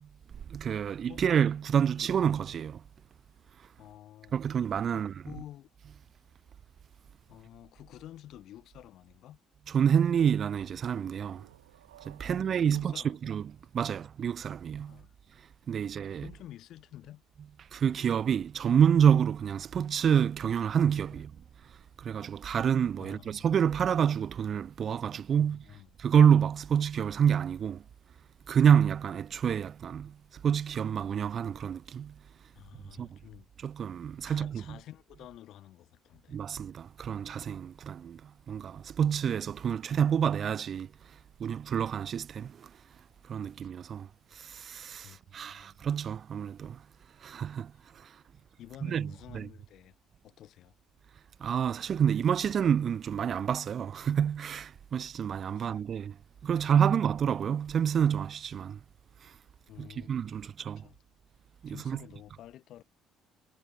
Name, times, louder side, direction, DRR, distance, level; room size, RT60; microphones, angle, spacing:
voice 1, 0.5-2.8 4.3-5.1 9.7-11.5 12.1-13.4 13.7-15.0 15.7-16.2 17.7-21.3 22.0-25.6 26.0-27.8 28.5-30.1 30.4-32.1 33.0-33.1 33.6-34.8 36.3-38.2 38.5-40.9 41.4-42.7 43.3-44.1 44.4-46.8 47.2-47.7 48.9-49.5 51.4-56.1 56.4-58.8 59.8-60.8 61.6-62.0, right 8 dB, 50° right, 0.3 m, -28 dB
voice 2, 3.8-4.3 4.9-5.7 7.3-9.4 12.2-13.4 14.9-15.1 15.8-17.2 21.1-21.3 23.0-23.5 25.4-25.9 32.5-33.5 34.2-36.4 45.0-45.8 47.7-47.8 48.6-50.0 50.2-50.7 55.5-55.8 56.5-56.7 59.7-60.4 60.8-61.0 61.7-62.8, left 13 dB, 65° left, 0.9 m, -50 dB
sound 1, 10.9-14.5, right 13 dB, 90° right, 1.9 m, -60 dB
hypercardioid pair, 60°, 0 cm